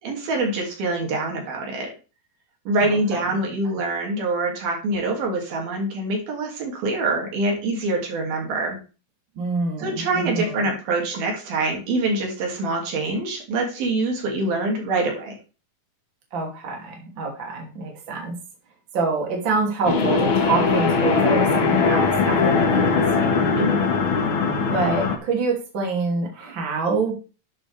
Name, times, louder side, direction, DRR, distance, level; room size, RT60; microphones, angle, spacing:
voice 1, 0.0-1.9 2.7-8.8 9.8-15.4 23.6-23.9, right 2 dB, 70° right, 1 dB, 4.3 m, -25 dB
voice 2, 2.8-3.2 9.4-10.7 16.3-18.4 18.9-23.3 24.6-27.1, right 4 dB, 35° right, 0 dB, 2.9 m, -26 dB
sound 1, 19.8-25.2, left 4 dB, 60° left, 1.3 m, -20 dB
12.0 x 8.1 x 3.4 m, 0.33 s
omnidirectional pair, 4.5 m